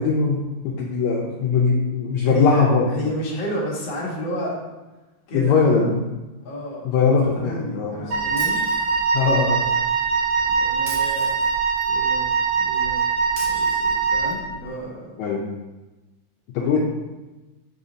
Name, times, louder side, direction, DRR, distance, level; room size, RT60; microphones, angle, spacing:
voice 1, 0.0-2.9 5.3-6.0 6.8-8.1 9.1-9.6 15.2-15.5 16.5-16.8, left 5 dB, 75° left, -3 dB, 1.8 m, -20 dB
voice 2, 2.2-4.5 5.3-5.9 6.4-6.9 7.3-8.7 10.4-11.3 11.9-13.0 13.4-15.1 16.6-16.8, equal, 45° left, -5 dB, 1.7 m, -31 dB
Wind instrument woodwind instrument, 8.1-14.5, right 5 dB, 80° right, 3.1 m, -22 dB
Shatter, 8.4-9.3 10.9-11.9 13.4-14.4, right 2 dB, 65° right, 2.3 m, -39 dB
6.9 x 2.7 x 5.0 m, 1.1 s
omnidirectional pair, 3.8 m